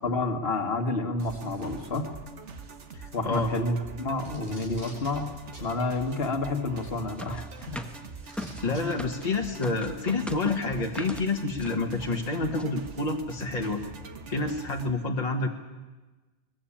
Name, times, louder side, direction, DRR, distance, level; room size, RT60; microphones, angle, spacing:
voice 1, 0.0-2.1 3.1-5.3 5.6-7.9 8.7-9.1, left 2 dB, 55° left, 4 dB, 1.9 m, -30 dB
sound 1, 1.2-14.9, right 4 dB, 80° right, 1.8 m, -44 dB
voice 2, 2.9-3.5 8.3-8.4 8.6-13.8 14.3-15.5, left 3 dB, 35° left, 1 dB, 1.6 m, -28 dB
Packing tape duct tape, 4.2-5.1 5.5-5.7 7.0-7.1 8.2-8.8 9.9-10.0, right 1 dB, 55° right, 6.0 m, -47 dB
sound 2, 7.2-9.3 9.6-11.3 11.6-11.8 12.1-12.2 12.4-12.7, equal, ahead, 1.1 m, -40 dB
22.0 x 21.0 x 8.7 m, 1.2 s
omnidirectional pair, 1.2 m